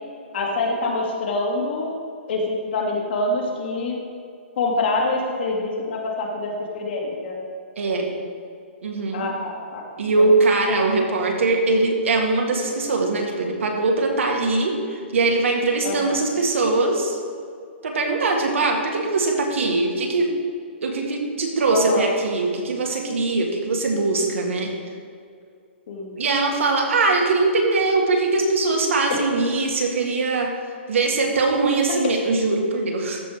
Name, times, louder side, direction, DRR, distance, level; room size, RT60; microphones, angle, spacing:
voice 1, 0.3-1.9 2.3-4.0 4.6-7.4 9.1-9.9 10.2-10.3 15.8-16.2 21.7-22.1 25.9-26.2, left 2 dB, 55° left, -1 dB, 2.0 m, -25 dB
voice 2, 7.8-8.1 8.8-9.3 10.0-17.2 17.8-20.3 20.8-24.7 26.2-30.5 30.9-33.2, right 3 dB, 80° right, 1 dB, 1.9 m, -21 dB
13.5 x 4.6 x 5.0 m, 2.3 s
hypercardioid pair, 160°, 7 cm